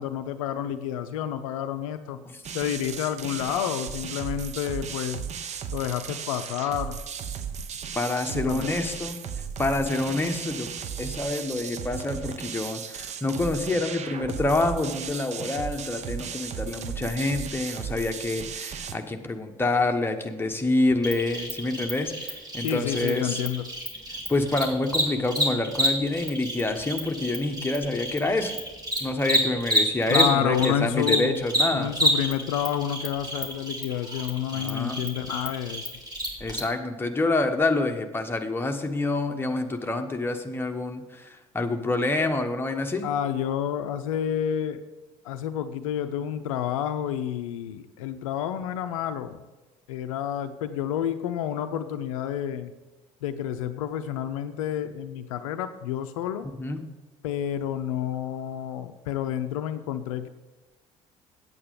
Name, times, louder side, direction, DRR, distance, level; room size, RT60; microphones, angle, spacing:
voice 1, 0.0-2.2 2.5-5.2 5.7-7.0 8.3-8.7 22.6-23.6 30.1-31.4 31.7-35.9 43.0-44.8 45.2-49.4 49.9-52.7 53.2-56.5 57.2-60.3, left 10 dB, 75° left, 10 dB, 0.5 m, -29 dB
sound 1, 2.4-19.0, right 7 dB, 40° right, 0.8 m, -36 dB
voice 2, 7.9-9.2 9.6-10.7 11.0-23.4 24.3-28.5 29.0-31.9 34.5-35.0 36.4-43.0 56.6-56.8, left 2 dB, 10° left, 4 dB, 1.1 m, -27 dB
Cricket, 21.0-30.7 31.0-36.6, equal, 20° right, 2.6 m, -28 dB
8.7 x 8.4 x 5.2 m, 1.1 s
figure-of-eight pair, 55°, 18 cm